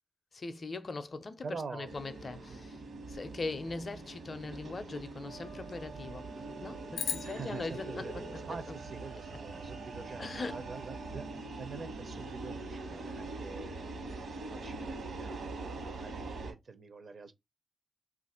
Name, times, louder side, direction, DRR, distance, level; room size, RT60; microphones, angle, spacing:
voice 1, 0.3-1.5 1.7-2.8 3.1-6.3 6.6-8.6 10.2-10.7, left 3 dB, 30° left, 0.5 m, -40 dB
voice 2, 1.4-1.9 2.5-2.6 7.2-11.3 11.6-13.9 14.5-17.3, right 4 dB, 45° right, 0.5 m, -45 dB
sound 1, 1.8-16.5, right 2 dB, 70° right, 1.1 m, -43 dB
sound 2, 5.2-11.4, right 4 dB, 90° right, 1.1 m, -50 dB
sound 3, 6.9-9.4, left 6 dB, 85° left, 0.5 m, -41 dB
2.9 x 2.4 x 4.2 m
wide cardioid pair, 155°, 0 cm